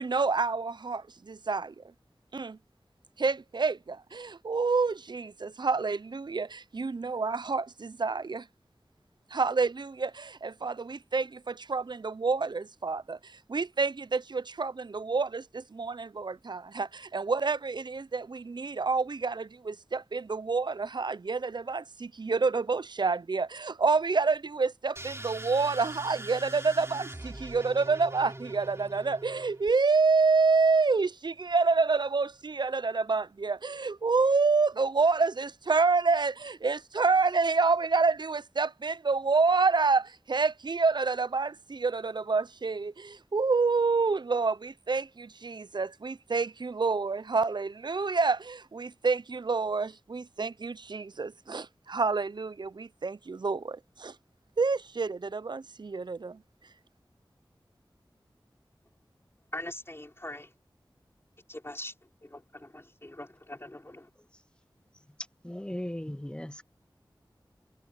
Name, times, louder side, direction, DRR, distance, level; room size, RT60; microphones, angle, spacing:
voice 1, 0.0-1.7 2.3-2.6 3.2-8.4 9.3-13.2 13.5-54.1 54.6-56.4, right 4 dB, 60° right, 0.6 m, -28 dB
sound 1, 25.0-29.7, right 1 dB, 30° right, 3.2 m, -42 dB
voice 2, 59.5-60.5 61.5-61.9 62.2-64.1, left 1 dB, 30° left, 4.3 m, -42 dB
voice 3, 65.4-66.6, left 1 dB, 10° left, 0.9 m, -37 dB
wide cardioid pair, 40°, 9 cm